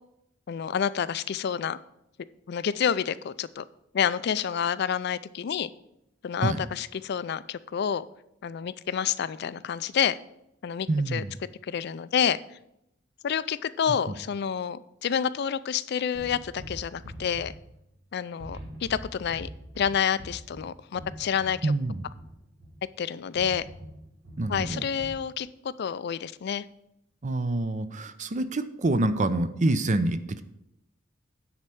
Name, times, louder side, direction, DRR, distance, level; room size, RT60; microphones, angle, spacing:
voice 1, 0.5-1.8 2.5-3.6 3.9-5.7 6.2-8.1 8.4-10.2 10.6-11.2 11.6-12.4 13.2-17.5 18.1-19.5 19.8-21.7 23.0-23.7 24.5-26.6, left 8 dB, 60° left, 15 dB, 0.4 m, -28 dB
voice 2, 10.9-11.3 14.1-14.2 21.6-22.0 24.4-24.9 27.2-30.4, right 2 dB, 40° right, 11 dB, 0.6 m, -26 dB
sound 1, 16.1-18.1 18.4-22.9 23.3-25.3, equal, 85° right, 2.3 m, -44 dB
9.7 x 4.4 x 7.7 m, 0.81 s
head